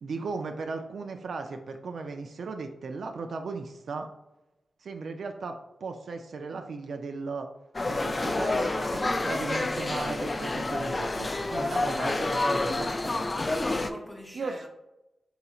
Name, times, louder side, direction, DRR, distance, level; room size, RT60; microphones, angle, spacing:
voice 1, 0.0-4.1 4.8-7.5 7.8-13.1 14.3-14.6, right 4 dB, 75° right, 0.4 m, -36 dB
sound 1, 7.7-13.9, left 2 dB, 30° left, 0.3 m, -28 dB
voice 2, 12.6-13.3 13.6-14.7, equal, 5° right, 0.8 m, -46 dB
4.2 x 3.9 x 2.3 m
wide cardioid pair, 90°, 0 cm